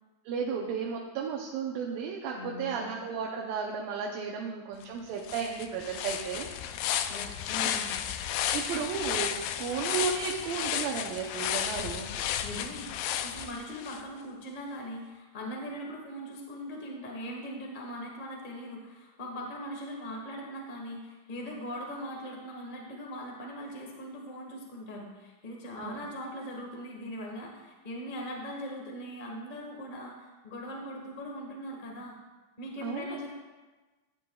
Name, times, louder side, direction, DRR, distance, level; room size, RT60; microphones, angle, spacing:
voice 1, 0.3-6.5 7.6-7.7 8.5-12.2 25.8-26.0 32.8-33.3, right 6 dB, 80° right, -1 dB, 2.5 m, -34 dB
voice 2, 2.3-2.9 7.1-8.0 8.7-8.8 12.4-32.1 32.6-33.3, equal, 60° left, -1 dB, 0.5 m, -40 dB
sound 1, 4.8-4.9 5.2-14.0, left 10 dB, 80° left, 2.0 m, -33 dB
15.0 x 9.5 x 2.3 m, 1.2 s
omnidirectional pair, 4.0 m